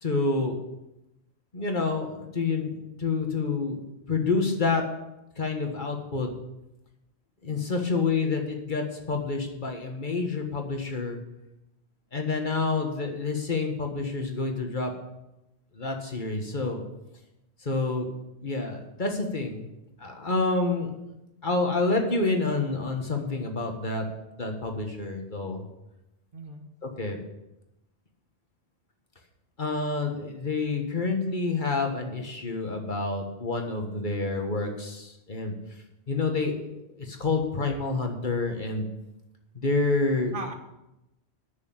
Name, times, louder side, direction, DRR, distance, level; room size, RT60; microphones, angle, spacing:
voice 1, 0.0-0.6 1.5-4.8 5.4-6.3 7.4-11.2 12.1-14.9 15.7-16.8 17.6-18.1 18.4-19.7 20.0-20.9 21.4-24.0 24.4-25.6 26.8-27.2 29.6-35.5 36.1-38.9 39.5-40.3, left 3 dB, 45° left, 3 dB, 1.6 m, -28 dB
voice 2, 7.7-8.0 26.3-26.7 40.3-40.5, right 3 dB, 55° right, 5 dB, 1.5 m, -38 dB
9.5 x 6.8 x 8.6 m, 0.92 s
omnidirectional pair, 1.1 m